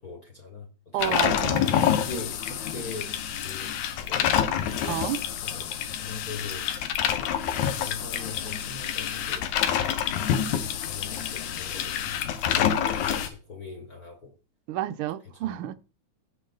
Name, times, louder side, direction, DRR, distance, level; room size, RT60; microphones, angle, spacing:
voice 1, 0.0-1.6 1.9-3.1 3.4-4.6 5.4-6.7 7.1-7.4 7.8-9.5 10.1-14.3 15.3-15.5, left 4 dB, 50° left, 1.1 m, -41 dB
voice 2, 0.9-2.0 4.8-5.2 14.7-15.7, right 13 dB, 75° right, 1.3 m, -30 dB
sound 1, 1.0-13.3, left 9 dB, 85° left, 2.3 m, -27 dB
16.5 x 5.6 x 3.8 m
omnidirectional pair, 3.4 m